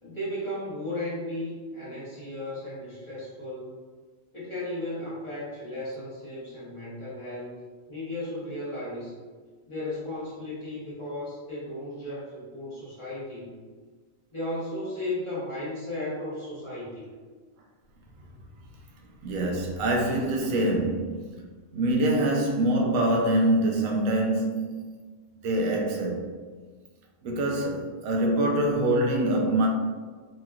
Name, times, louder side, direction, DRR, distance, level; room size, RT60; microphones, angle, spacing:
voice 1, 0.0-3.7 4.3-7.6 7.9-9.1 9.7-13.6 14.3-17.1, left 1 dB, 25° left, 1.0 m, -35 dB
voice 2, 19.2-21.3 21.7-24.9 25.4-26.3 27.2-29.7, right 1 dB, 90° right, 1.0 m, -25 dB
3.0 x 2.9 x 2.3 m
omnidirectional pair, 1.4 m